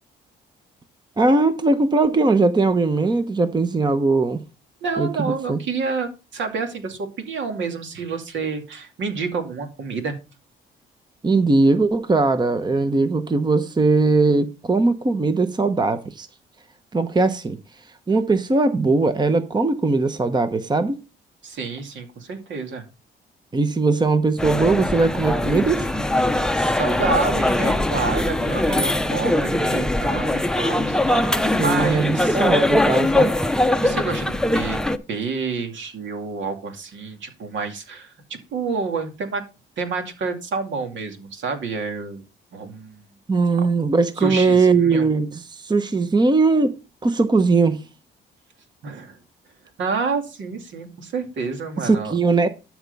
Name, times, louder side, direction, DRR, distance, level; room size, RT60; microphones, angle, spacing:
voice 1, 1.2-4.4 5.0-5.6 11.2-16.3 16.9-17.6 18.1-21.0 23.5-25.9 31.6-33.3 43.3-46.8 47.0-47.8 51.8-52.5, right 3 dB, 20° right, 0.9 m, -19 dB
voice 2, 4.8-10.1 21.4-22.8 26.2-31.3 31.6-32.4 33.8-34.8 35.1-38.1 38.5-39.4 39.8-42.2 42.5-43.1 43.6-43.7 44.2-45.1 48.8-49.2 49.8-52.1, right 4 dB, 70° right, 2.5 m, -28 dB
sound 1, 24.4-35.0, left 1 dB, 5° left, 0.7 m, -21 dB
12.5 x 4.7 x 5.4 m
cardioid pair, 90°, 20 cm